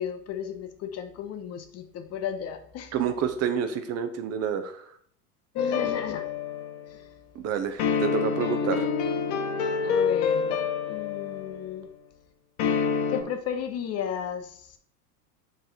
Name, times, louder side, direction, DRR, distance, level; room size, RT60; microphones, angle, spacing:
voice 1, 0.0-2.9 5.5-6.3 6.9-7.0 9.8-11.9 13.1-14.8, left 8 dB, 35° left, 7 dB, 0.7 m, -34 dB
voice 2, 2.9-4.8 7.3-8.9, right 7 dB, 35° right, 8 dB, 0.7 m, -28 dB
sound 1, 5.6-6.9 7.8-11.7 12.6-13.2, left 6 dB, 50° left, 1.0 m, -27 dB
7.3 x 3.4 x 4.3 m, 0.63 s
hypercardioid pair, 85°, 47 cm